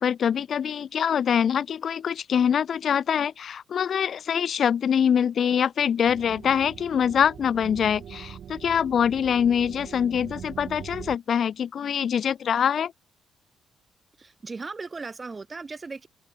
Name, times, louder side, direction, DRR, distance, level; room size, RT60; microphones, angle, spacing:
voice 1, 0.0-12.9, left 8 dB, 55° left, 0.4 m, -24 dB
sound 1, 6.0-11.2, right 9 dB, 60° right, 2.0 m, -42 dB
voice 2, 14.2-16.1, right 4 dB, 30° right, 1.9 m, -37 dB
open air
cardioid pair, 90°, 0 cm